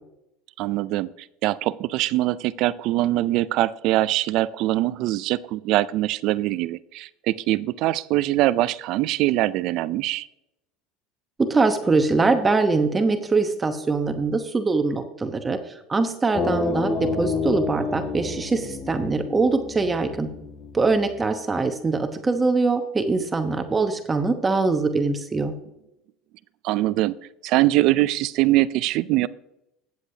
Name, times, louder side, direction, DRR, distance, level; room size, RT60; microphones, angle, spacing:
voice 1, 0.6-10.3 26.6-27.2 27.4-29.3, right 16 dB, 60° right, 18 dB, 0.4 m, -23 dB
voice 2, 11.4-15.6 15.9-20.3 20.7-25.5, right 3 dB, 20° right, 7 dB, 1.0 m, -23 dB
sound 1, 16.3-21.3, left 4 dB, 40° left, 1.6 m, -30 dB
14.5 x 8.2 x 2.8 m, 0.85 s
supercardioid pair, 115°, 0 cm